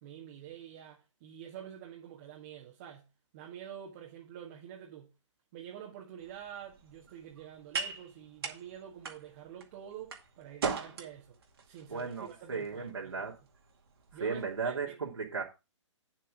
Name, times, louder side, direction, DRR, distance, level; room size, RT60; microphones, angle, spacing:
voice 1, 0.0-3.1 3.3-5.1 5.5-11.4 11.7-13.3 14.1-15.0, right 9 dB, 30° right, 1.7 m, -47 dB
sound 1, 6.2-14.6, right 5 dB, 50° right, 2.2 m, -42 dB
voice 2, 11.9-13.4 14.2-15.4, right 5 dB, 70° right, 2.6 m, -35 dB
9.3 x 7.4 x 3.8 m
figure-of-eight pair, 130°, 16 cm